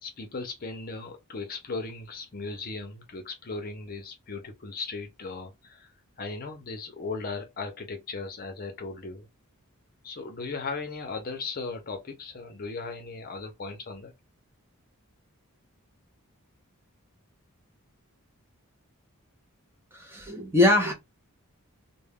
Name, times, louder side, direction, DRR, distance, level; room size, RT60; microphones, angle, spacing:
voice 1, 0.0-5.9 6.2-9.3 10.0-14.1, left 3 dB, 40° left, 0.6 m, -37 dB
voice 2, 19.9-20.9, left 2 dB, 10° right, 0.6 m, -22 dB
2.2 x 2.1 x 3.4 m
head